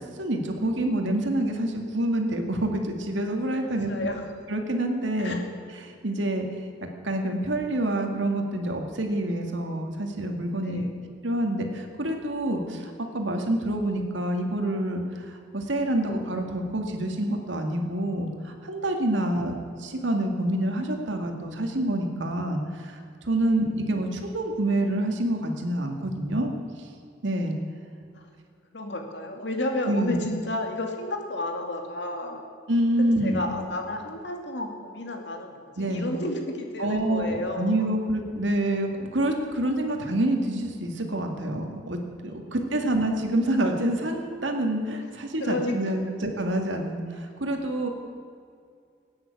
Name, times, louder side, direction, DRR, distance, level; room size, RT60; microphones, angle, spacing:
voice 1, 0.0-4.1 4.5-5.4 5.8-6.5 6.8-10.9 11.2-23.0 23.2-26.5 27.2-27.6 29.9-30.2 32.7-33.5 35.8-36.2 36.8-47.9, right 1 dB, 85° right, 3 dB, 2.1 m, -27 dB
voice 2, 3.6-4.3 5.2-5.5 10.6-11.1 19.2-19.3 23.4-23.6 28.1-28.3 28.7-32.4 33.0-37.9 42.2-42.6 45.4-45.8 46.0-46.1, left 1 dB, 65° left, 3 dB, 2.4 m, -32 dB
17.5 x 9.5 x 8.3 m, 2.3 s
head